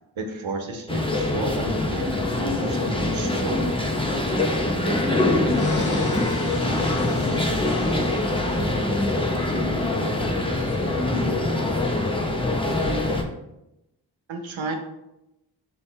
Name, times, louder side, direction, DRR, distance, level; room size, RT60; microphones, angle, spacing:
voice 1, 0.2-3.6 14.3-14.8, right 2 dB, 75° right, 4 dB, 0.9 m, -32 dB
sound 1, 0.9-13.2, left 2 dB, 10° left, 0.8 m, -24 dB
voice 2, 5.5-8.9 9.5-12.3, left 2 dB, 75° left, 4 dB, 0.9 m, -37 dB
sound 2, 5.5-9.4, left 1 dB, 40° left, 0.9 m, -38 dB
5.4 x 2.9 x 3.3 m, 0.90 s
cardioid pair, 45°, 47 cm